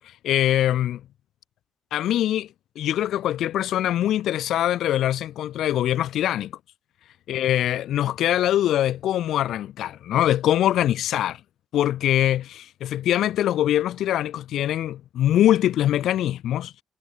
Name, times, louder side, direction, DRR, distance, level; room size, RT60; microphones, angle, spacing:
voice 1, 0.2-1.0 1.9-2.5 2.8-6.5 7.3-11.4 11.7-16.7, left 12 dB, 75° left, 6.8 m, -23 dB
cardioid pair, 90°, 0 cm